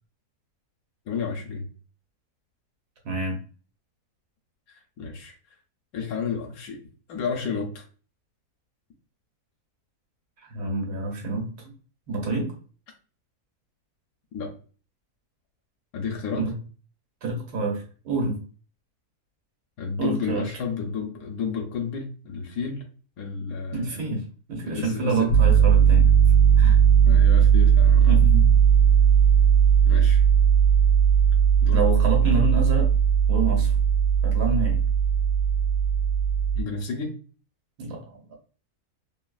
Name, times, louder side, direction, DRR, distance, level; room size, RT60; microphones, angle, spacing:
voice 1, 1.1-1.7 4.7-5.3 5.9-6.8 7.1-7.8 14.3-14.5 15.9-16.5 19.8-22.9 23.2-24.2 24.6-25.3 27.0-28.2 29.9-30.2 31.6-31.8 36.5-37.2, left 5 dB, 75° left, 2 dB, 1.1 m, -31 dB
voice 2, 3.0-3.4 10.4-11.5 12.1-12.5 16.4-16.6 17.2-18.4 20.0-20.4 23.7-24.2 24.5-26.1 26.6-26.8 28.1-28.5 31.7-32.9 33.3-33.7 34.2-34.8 37.8-38.3, right 3 dB, 80° right, 0 dB, 1.4 m, -27 dB
Piano, 25.3-36.6, right 8 dB, 50° left, 1.0 m, -18 dB
3.0 x 2.4 x 2.2 m, 0.38 s
omnidirectional pair, 1.6 m